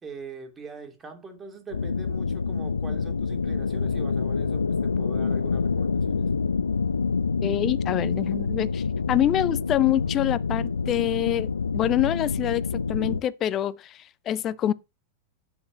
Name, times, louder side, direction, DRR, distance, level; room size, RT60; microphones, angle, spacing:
voice 1, 0.0-6.3, right 4 dB, 20° right, 3.1 m, -42 dB
sound 1, 1.7-13.2, left 5 dB, 75° left, 0.5 m, -27 dB
voice 2, 7.4-14.7, left 12 dB, 30° left, 0.7 m, -26 dB
11.5 x 8.7 x 3.0 m
figure-of-eight pair, 90°, 0 cm